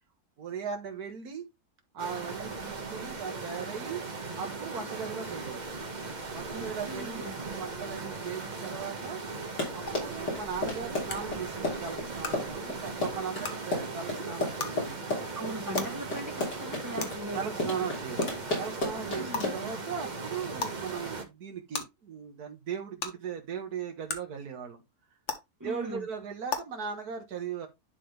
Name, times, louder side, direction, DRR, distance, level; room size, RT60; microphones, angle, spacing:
voice 1, 0.4-1.5 1.9-4.0 4.4-5.7 6.3-9.2 9.7-15.3 17.3-18.3 18.6-24.8 25.6-27.7, right 6 dB, 70° right, 2.0 m, -38 dB
sound 1, 2.0-21.2, right 3 dB, 30° right, 1.2 m, -38 dB
voice 2, 6.5-7.4 15.3-17.4 19.2-19.6 25.6-26.1, right 1 dB, 15° right, 0.9 m, -39 dB
Run, 9.3-19.8, left 2 dB, 85° left, 3.8 m, -32 dB
sound 2, 9.9-10.0 11.1-11.2 12.2-12.3 13.4-13.5 14.6-14.7 15.8-15.9 17.0-17.1 18.2-18.3 19.3-19.4 20.6-20.7 21.7-21.8 23.0-23.1 24.1-24.2 25.3-25.4 26.5-26.6, left 4 dB, 50° left, 1.6 m, -32 dB
11.0 x 3.7 x 3.4 m
omnidirectional pair, 1.7 m